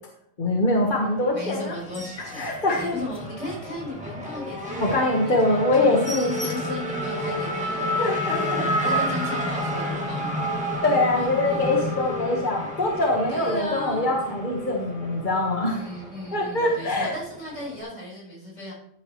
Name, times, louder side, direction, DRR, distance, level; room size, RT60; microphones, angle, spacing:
voice 1, 0.4-1.8 2.2-2.9 4.8-6.3 8.0-9.0 10.8-15.8 16.3-17.1, left 2 dB, 40° left, -1 dB, 1.5 m, -23 dB
Race car auto racing / Accelerating revving vroom, 0.8-17.8, equal, 5° right, 1.8 m, -31 dB
voice 2, 1.3-2.5 2.7-8.0 8.8-10.3 11.2-11.6 13.3-14.1 15.6-18.7, left 2 dB, 70° left, -5 dB, 4.8 m, -36 dB
sound 1, 1.8-3.9 4.4-4.5 4.9-5.0 5.3-5.4 5.7-7.0 7.5-7.6 7.9-8.0 8.2-8.7 9.5-9.7, left 1 dB, 20° left, 1.4 m, -41 dB
13.0 x 8.6 x 3.1 m, 0.71 s
omnidirectional pair, 1.3 m